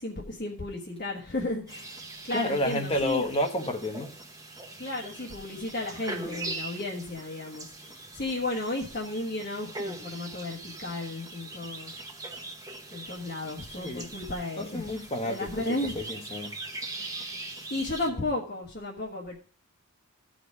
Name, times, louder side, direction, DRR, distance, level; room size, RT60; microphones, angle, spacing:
voice 1, 0.0-3.2 4.8-11.9 12.9-14.9 15.2-16.0 17.0-17.4 17.7-19.4, left 2 dB, 45° left, -4 dB, 1.5 m, -34 dB
sound 1, 1.7-18.1, right 2 dB, 15° right, 1.0 m, -41 dB
voice 2, 2.3-4.1 13.8-14.1 14.6-15.5 15.9-16.5 18.1-18.2, left 1 dB, 25° left, 3 dB, 1.1 m, -30 dB
14.0 x 5.1 x 4.8 m, 0.39 s
head